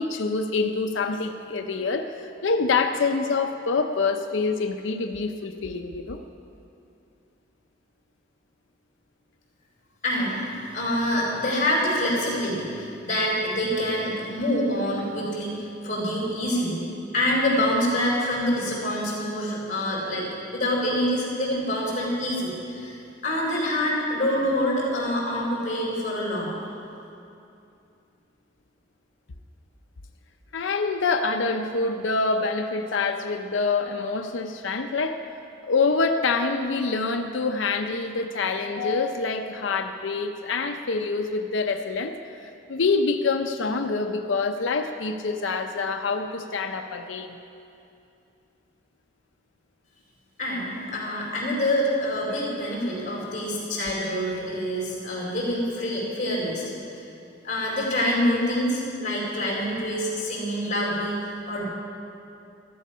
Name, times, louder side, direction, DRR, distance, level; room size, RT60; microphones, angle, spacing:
voice 1, 0.0-6.2 30.5-35.2 35.7-47.4, left 4 dB, 80° left, 6 dB, 0.6 m, -26 dB
voice 2, 10.0-10.4 10.7-16.8 17.1-23.0 23.2-26.5 50.4-57.0 57.4-61.2 61.5-61.6, left 1 dB, 40° left, -4 dB, 4.4 m, -26 dB
14.0 x 13.5 x 5.5 m, 2.7 s
head